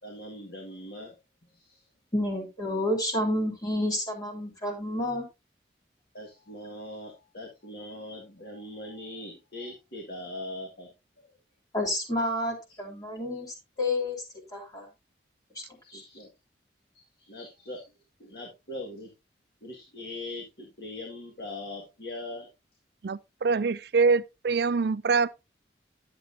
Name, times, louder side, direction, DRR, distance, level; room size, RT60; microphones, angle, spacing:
voice 1, 0.0-1.9 6.1-11.3 15.8-16.3 16.9-17.9 18.2-19.1 19.6-22.5, left 1 dB, 60° left, 1.8 m, -41 dB
voice 2, 2.1-5.3 11.7-13.5 13.8-14.2 14.5-14.9 15.9-16.0, left 1 dB, 20° left, 2.4 m, -29 dB
voice 3, 23.0-25.3, right 4 dB, 65° right, 0.4 m, -24 dB
10.5 x 7.6 x 2.7 m
head